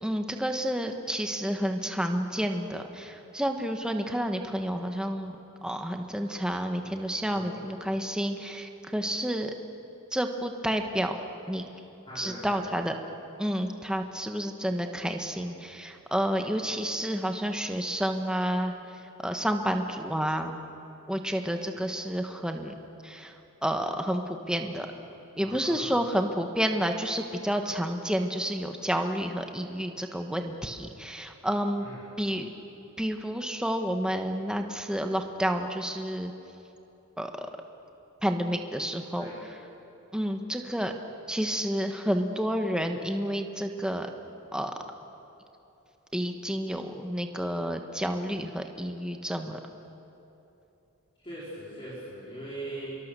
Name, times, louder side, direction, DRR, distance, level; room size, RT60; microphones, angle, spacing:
voice 1, 0.0-5.4 5.6-9.5 10.1-11.2 11.5-11.7 12.2-13.0 13.4-20.6 21.1-22.7 23.0-23.3 23.6-24.9 25.4-31.9 32.2-32.5 33.0-36.3 37.2-37.5 38.2-39.3 40.1-40.9 41.3-44.1 44.5-44.7 46.1-49.6, equal, 5° right, 4 dB, 1.1 m, -30 dB
voice 2, 12.0-12.7 21.7-21.9 23.2-23.3 25.4-26.1 31.8-32.1 39.2-39.4 51.2-53.0, right 1 dB, 25° left, -9 dB, 4.3 m, -41 dB
26.5 x 23.0 x 6.8 m, 3.0 s
head